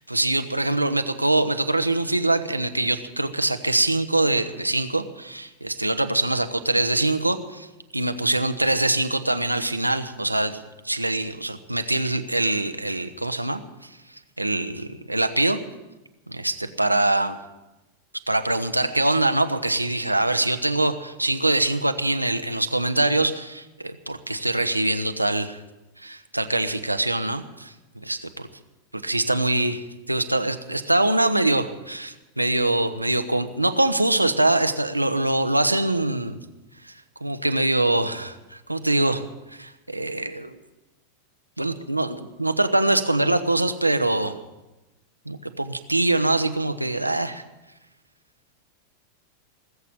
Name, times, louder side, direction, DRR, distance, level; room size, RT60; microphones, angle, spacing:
voice 1, 0.0-7.7 7.9-10.6 10.8-13.6 14.4-15.6 16.3-17.4 18.3-25.6 26.0-28.5 28.9-29.8 30.1-36.4 36.8-36.9 37.2-39.2 39.6-40.6 41.6-44.4 45.3-47.4, right 2 dB, 85° right, 8 dB, 0.9 m, -23 dB
19.5 x 8.2 x 8.8 m, 1.0 s
figure-of-eight pair, 90°, 0 cm